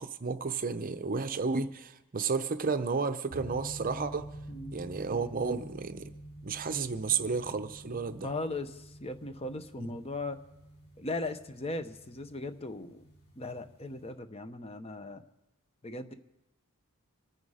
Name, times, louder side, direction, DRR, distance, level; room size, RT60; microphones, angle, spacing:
voice 1, 0.0-4.3 4.7-6.1 6.4-8.3 9.8-9.9, right 5 dB, 40° right, 11 dB, 0.7 m, -32 dB
sound 1, 3.3-14.1, right 1 dB, 70° left, 3.9 m, -48 dB
voice 2, 4.5-4.8 8.2-10.4 11.0-13.1 13.4-15.2 15.8-16.1, left 2 dB, 25° left, 9 dB, 0.8 m, -38 dB
26.0 x 9.6 x 4.9 m, 0.91 s
head